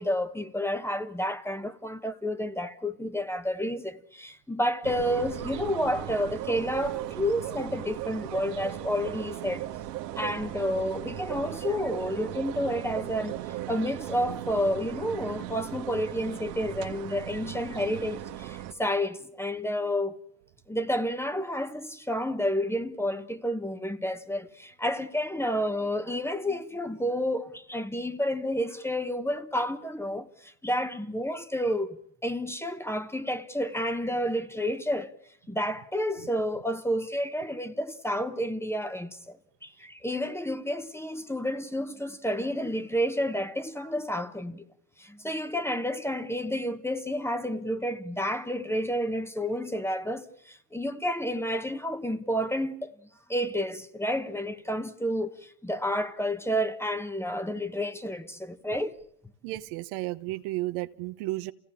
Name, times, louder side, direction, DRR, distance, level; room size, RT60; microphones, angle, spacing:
voice 1, 0.0-9.6 10.2-13.3 13.7-20.2 20.7-30.3 30.6-32.0 32.2-35.1 35.5-39.3 39.6-44.6 45.0-52.9 53.3-55.3 55.6-58.9, equal, 5° left, 1.2 m, -30 dB
sound 1, 4.8-18.7, right 13 dB, 85° right, 1.7 m, -37 dB
voice 2, 59.4-61.5, right 18 dB, 60° right, 1.1 m, -33 dB
28.0 x 17.0 x 8.6 m
supercardioid pair, 105°, 47 cm